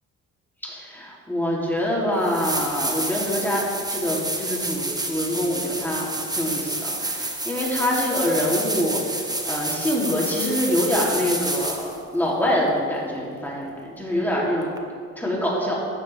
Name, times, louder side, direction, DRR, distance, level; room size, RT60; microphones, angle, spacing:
voice 1, 0.6-9.0 9.4-14.8 15.2-15.8, left 1 dB, 5° left, -5 dB, 3.2 m, -25 dB
sound 1, 1.7-1.8 2.2-12.0 14.8-14.9, right 2 dB, 15° right, 1.2 m, -29 dB
13.5 x 9.2 x 3.5 m, 2.1 s
cardioid pair, 90°, 30 cm